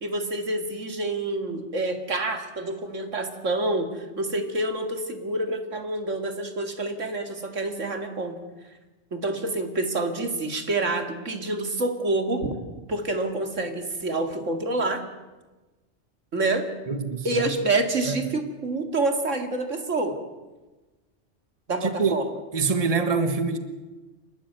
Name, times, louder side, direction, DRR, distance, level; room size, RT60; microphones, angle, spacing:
voice 1, 0.0-8.4 9.1-12.6 12.9-15.0 16.3-16.7 17.2-20.2 21.7-22.2, right 2 dB, 90° right, 6 dB, 2.6 m, -27 dB
voice 2, 16.9-17.5 18.0-18.2 21.8-22.1 22.5-23.6, right 4 dB, 30° right, 9 dB, 1.5 m, -25 dB
28.5 x 12.5 x 9.3 m, 1.2 s
omnidirectional pair, 1.2 m